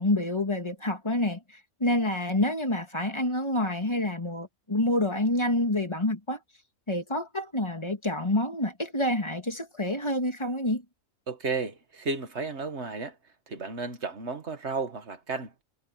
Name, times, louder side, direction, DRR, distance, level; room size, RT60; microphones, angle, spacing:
voice 1, 0.0-6.4 6.9-10.8, left 1 dB, 20° left, 2.6 m, -28 dB
voice 2, 11.3-13.2 13.5-15.5, right 4 dB, 50° right, 1.9 m, -33 dB
omnidirectional pair, 1.5 m